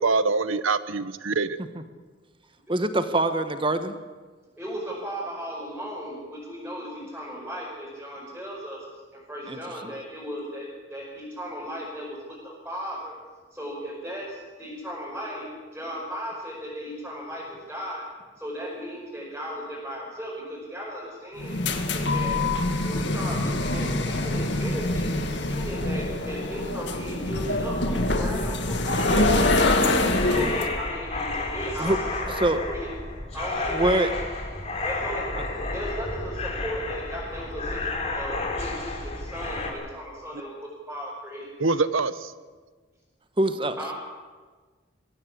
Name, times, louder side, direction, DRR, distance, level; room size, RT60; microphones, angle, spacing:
voice 1, 0.0-1.6 41.6-42.3, right 3 dB, 90° right, 14 dB, 1.1 m, -24 dB
voice 2, 2.7-3.9 9.5-9.9 29.1-29.3 30.3-30.5 31.8-32.0 32.3-32.6 33.7-34.1 43.4-43.8, right 1 dB, 25° right, 9 dB, 1.3 m, -25 dB
voice 3, 4.6-8.8 9.3-10.6 10.9-13.1 13.5-18.0 18.4-21.5 21.9-22.4 22.8-29.5 30.2-32.9 33.3-34.0 34.8-35.3 35.7-40.5 40.9-41.7 43.8-43.9, equal, 10° right, -7 dB, 5.6 m, -36 dB
sound 1, 21.4-30.7, left 2 dB, 60° left, 2.1 m, -25 dB
sound 2, 28.9-39.7, left 2 dB, 30° left, 4.2 m, -31 dB
22.5 x 16.0 x 8.6 m, 1.4 s
head